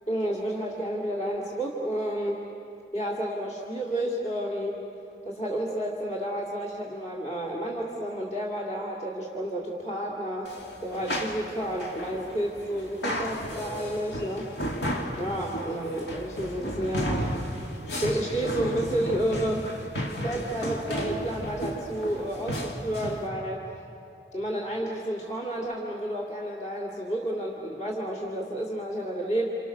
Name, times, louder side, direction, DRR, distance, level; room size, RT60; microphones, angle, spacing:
voice 1, 0.1-2.5 2.9-4.9 5.2-10.5 10.8-14.5 15.2-17.3 17.9-19.7 20.2-23.7 24.3-29.5, right 1 dB, 40° left, -2 dB, 2.4 m, -31 dB
sound 1, 10.4-23.3, equal, 75° left, 2.4 m, -33 dB
29.5 x 28.0 x 6.4 m, 2.8 s
head